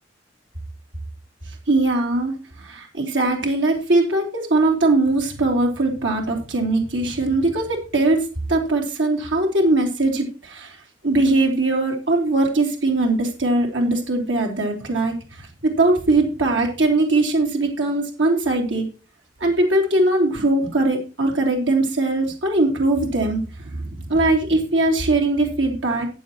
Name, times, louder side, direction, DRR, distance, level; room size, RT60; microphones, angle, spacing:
voice 1, 1.7-10.8 11.0-18.9 19.4-23.4 23.8-26.1, right 2 dB, 90° right, 0 dB, 3.1 m, -20 dB
14.0 x 9.0 x 3.0 m, 0.33 s
head